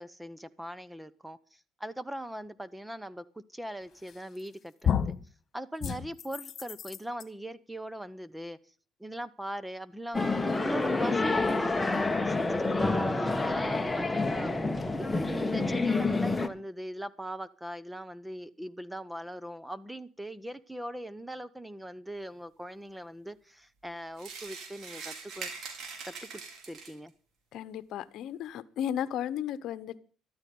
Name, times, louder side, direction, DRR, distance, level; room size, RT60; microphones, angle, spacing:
voice 1, 0.0-1.4 1.8-3.2 3.5-5.1 5.5-8.6 9.0-14.5 15.0-25.5 26.0-26.4 26.7-27.1, right 1 dB, 5° right, 0.9 m, -41 dB
sound 1, 4.1-4.5 4.8-5.2 5.8-7.2, left 8 dB, 50° left, 2.0 m, -31 dB
sound 2, 10.1-16.5, left 3 dB, 15° left, 1.4 m, -28 dB
sound 3, 24.2-27.1, right 5 dB, 65° right, 5.3 m, -42 dB
voice 2, 27.5-30.0, left 10 dB, 70° left, 1.0 m, -34 dB
13.5 x 13.0 x 5.4 m
supercardioid pair, 85°, 0 cm